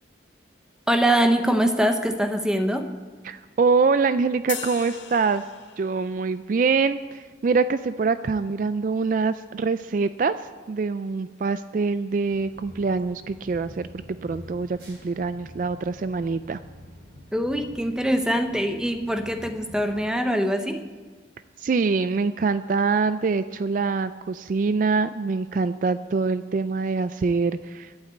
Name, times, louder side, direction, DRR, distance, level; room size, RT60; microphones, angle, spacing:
voice 1, 0.9-2.9 17.3-20.8, right 1 dB, 5° right, 7 dB, 0.8 m, -23 dB
voice 2, 3.2-5.4 5.8-13.9 14.2-16.6 21.6-27.9, right 4 dB, 45° right, 13 dB, 0.3 m, -24 dB
sound 1, 4.5-6.1, left 9 dB, 90° left, 1.3 m, -37 dB
sound 2, 12.2-20.0, equal, 65° right, 3.4 m, -46 dB
11.5 x 8.8 x 8.4 m, 1.4 s
head